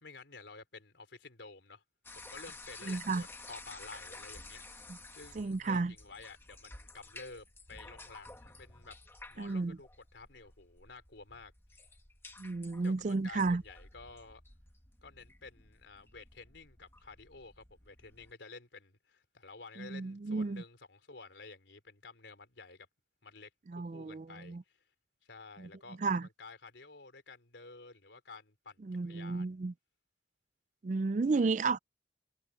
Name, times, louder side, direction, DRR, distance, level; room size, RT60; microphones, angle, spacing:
voice 1, 0.0-1.8 2.2-4.9 5.1-9.0 9.3-11.5 12.8-14.4 15.0-22.9 23.2-24.8 25.3-29.5 31.3-31.8, left 3 dB, 80° left, 3.6 m, -52 dB
sound 1, 2.0-18.3, left 2 dB, 15° left, 1.4 m, -52 dB
voice 2, 2.8-3.2 5.4-5.9 9.4-9.8 12.4-13.6 19.8-20.6 23.7-24.6 25.6-25.7 26.0-26.3 28.8-29.7 30.8-31.8, right 3 dB, 40° right, 0.4 m, -32 dB
head